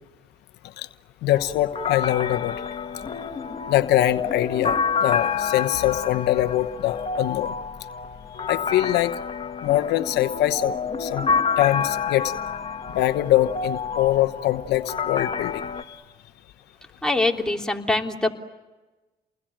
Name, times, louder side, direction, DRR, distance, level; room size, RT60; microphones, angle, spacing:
voice 1, 1.2-2.6 3.7-7.5 8.5-9.2 9.6-11.3 11.6-12.3 12.9-16.0, left 14 dB, 85° left, 11 dB, 1.0 m, -23 dB
sound 1, 1.3-15.8, left 5 dB, 35° left, 2.4 m, -28 dB
voice 2, 17.0-18.3, left 2 dB, 5° left, 1 dB, 3.3 m, -23 dB
29.5 x 21.0 x 9.1 m, 1.1 s
cardioid pair, 85°, 17 cm